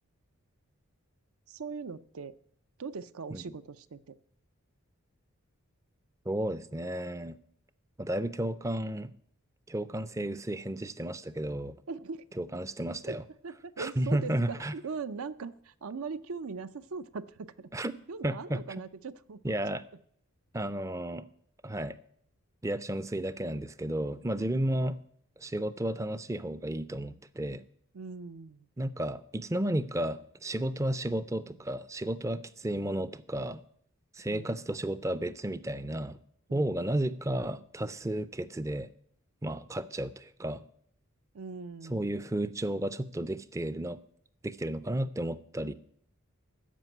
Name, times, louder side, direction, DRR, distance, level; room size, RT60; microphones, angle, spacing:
voice 1, 1.5-2.4 2.8-4.2 11.9-12.2 13.1-13.2 13.4-19.5 24.7-24.8 27.9-28.7 34.3-34.6 36.5-36.8 41.3-42.2, right 4 dB, 75° right, 14 dB, 0.6 m, -40 dB
voice 2, 6.3-7.4 8.0-9.1 9.7-11.7 12.4-13.2 13.8-14.7 17.7-17.9 18.2-18.6 19.4-19.8 20.5-21.3 21.6-22.0 22.6-25.0 25.4-27.6 28.8-33.6 34.1-36.2 36.5-38.9 39.4-40.6 41.9-44.0 44.4-45.7, right 1 dB, 15° right, 14 dB, 0.4 m, -33 dB
13.5 x 5.3 x 9.1 m, 0.66 s
head